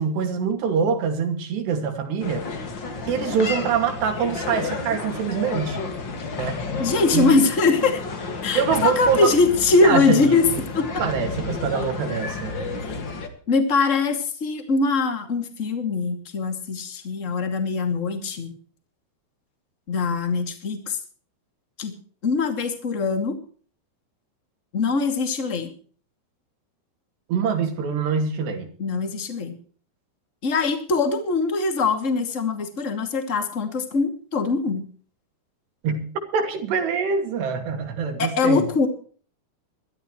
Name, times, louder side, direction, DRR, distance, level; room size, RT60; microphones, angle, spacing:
voice 1, 0.0-2.5 3.1-5.8 6.4-6.6 7.1-7.4 8.6-9.2 9.8-10.2 11.0-12.5 27.3-28.7 35.8-36.1 36.3-38.7, right 6 dB, 85° right, 5 dB, 4.7 m, -24 dB
sound 1, 2.2-13.3, left 4 dB, 40° left, 1.8 m, -31 dB
voice 2, 6.8-8.0 8.4-10.4 10.7-10.9 12.8-13.0 13.5-18.5 19.9-21.0 21.8-21.9 22.2-23.4 24.7-25.7 28.8-29.6 30.4-34.8 38.2-38.9, left 4 dB, 25° left, 6 dB, 2.0 m, -22 dB
22.5 x 13.0 x 3.1 m, 0.43 s
omnidirectional pair, 4.7 m